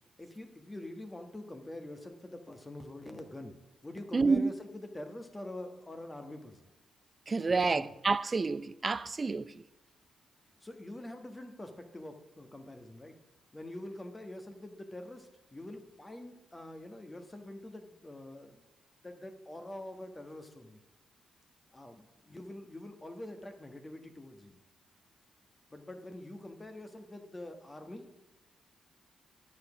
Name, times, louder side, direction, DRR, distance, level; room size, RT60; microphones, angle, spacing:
voice 1, 0.2-3.6 3.8-6.7 7.5-7.9 10.6-13.2 13.5-18.6 19.0-20.8 21.7-24.6 25.7-28.1, left 1 dB, 20° left, 1.2 m, -45 dB
voice 2, 4.1-4.5 7.3-9.5, right 4 dB, 35° right, 0.4 m, -29 dB
10.0 x 5.0 x 7.1 m
cardioid pair, 70°, 0 cm